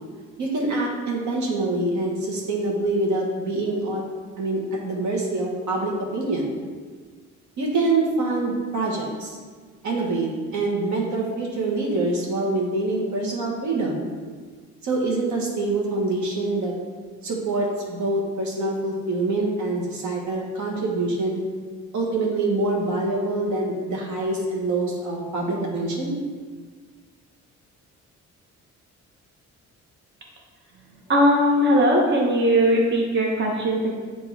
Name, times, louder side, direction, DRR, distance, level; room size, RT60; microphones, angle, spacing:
voice 1, 0.4-4.0 4.4-4.6 4.8-6.5 7.6-9.4 9.8-14.0 14.8-16.7 17.2-21.4 21.9-26.1, right 2 dB, 70° right, -2 dB, 1.3 m, -25 dB
voice 2, 31.1-34.0, equal, 35° right, -2 dB, 1.0 m, -19 dB
6.9 x 2.9 x 4.6 m, 1.5 s
cardioid pair, 90°, 30 cm